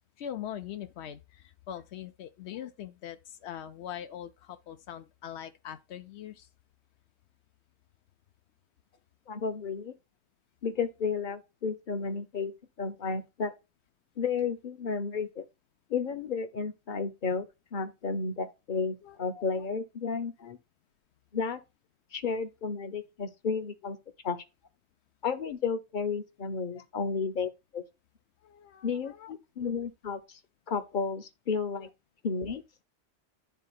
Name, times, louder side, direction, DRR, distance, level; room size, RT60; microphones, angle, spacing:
voice 1, 0.2-6.5 19.0-19.6 26.7-26.8 28.4-29.3 31.8-31.9, left 10 dB, 90° left, 0.9 m, -42 dB
voice 2, 9.3-9.9 10.6-13.5 14.2-15.4 15.9-20.6 21.3-21.6 22.1-24.0 24.2-24.4 25.2-27.8 28.8-30.4 30.7-31.9 32.2-32.6, left 5 dB, 50° left, 0.9 m, -32 dB
11.5 x 3.8 x 2.4 m
omnidirectional pair, 1.1 m